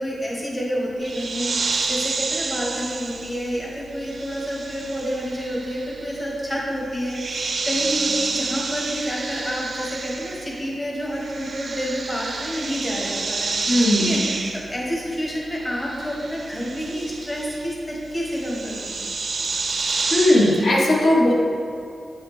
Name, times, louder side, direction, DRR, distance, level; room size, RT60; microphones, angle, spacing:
voice 1, 0.0-19.1, equal, 25° left, -4 dB, 1.2 m, -29 dB
sound 1, 1.0-10.7 11.0-20.7, right 4 dB, 55° right, 0.4 m, -30 dB
voice 2, 13.7-14.1 20.1-21.3, left 1 dB, 70° left, -5 dB, 1.1 m, -17 dB
8.1 x 4.8 x 3.2 m, 2.3 s
wide cardioid pair, 125°, 0 cm